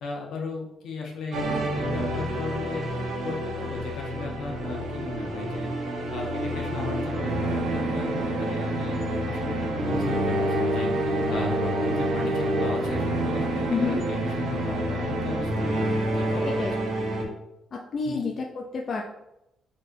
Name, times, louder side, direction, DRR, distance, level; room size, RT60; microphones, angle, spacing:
voice 1, 0.0-2.9 3.2-9.0 9.2-16.6 18.0-18.2, left 4 dB, 75° left, 0 dB, 0.9 m, -36 dB
sound 1, 1.3-17.3, right 1 dB, 75° right, 0.9 m, -28 dB
voice 2, 13.7-14.0 16.6-16.7 17.7-19.0, left 4 dB, 45° left, 1 dB, 0.4 m, -29 dB
4.3 x 3.3 x 2.5 m, 0.88 s
cardioid pair, 140°, 0 cm